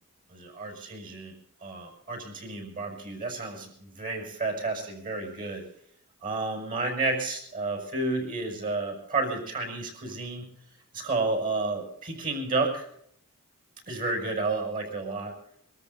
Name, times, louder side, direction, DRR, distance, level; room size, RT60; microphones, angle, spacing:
voice 1, 0.3-1.3 1.6-5.6 6.2-10.5 10.9-12.8 13.9-15.3, right 3 dB, 40° right, 3 dB, 6.2 m, -31 dB
24.5 x 13.5 x 4.1 m, 0.65 s
head